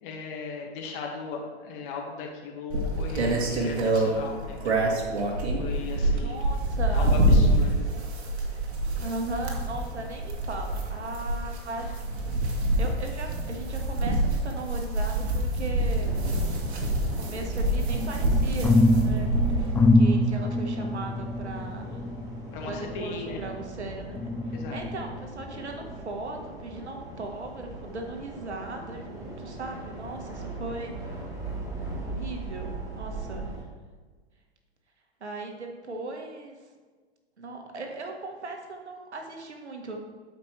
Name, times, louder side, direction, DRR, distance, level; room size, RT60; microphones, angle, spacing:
voice 1, 0.0-5.0 5.6-6.4 6.9-7.9 22.5-23.4 24.5-24.8, left 4 dB, 50° left, 0 dB, 1.9 m, -37 dB
sound 1, 2.7-19.9, right 1 dB, 70° right, 1.8 m, -26 dB
voice 2, 6.1-7.2 9.0-11.9 12.4-16.3 17.1-18.7 19.0-21.9 22.6-30.9 32.0-33.5 35.2-36.6 37.4-40.0, right 2 dB, 90° right, 3 dB, 1.5 m, -38 dB
sound 2, 16.0-33.6, right 2 dB, 10° right, 2.3 m, -40 dB
sound 3, 17.9-23.7 24.2-25.3 25.8-25.9, left 2 dB, 5° left, 0.3 m, -25 dB
12.0 x 5.2 x 3.3 m, 1.5 s
hypercardioid pair, 105°, 33 cm